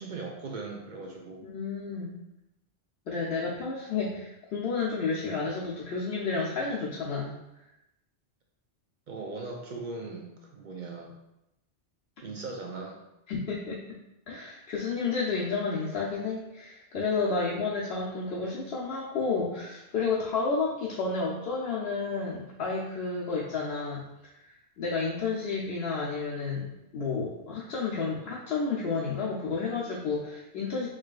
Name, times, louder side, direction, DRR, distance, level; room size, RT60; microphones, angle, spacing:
voice 1, 0.0-1.5 9.1-11.1 12.2-13.0, right 3 dB, 55° right, 1 dB, 0.6 m, -39 dB
voice 2, 1.4-2.1 3.1-7.4 13.3-13.8 14.3-24.0 24.8-26.7 26.9-30.9, left 4 dB, 65° left, -5 dB, 0.9 m, -31 dB
4.8 x 3.1 x 2.4 m, 0.88 s
omnidirectional pair, 1.1 m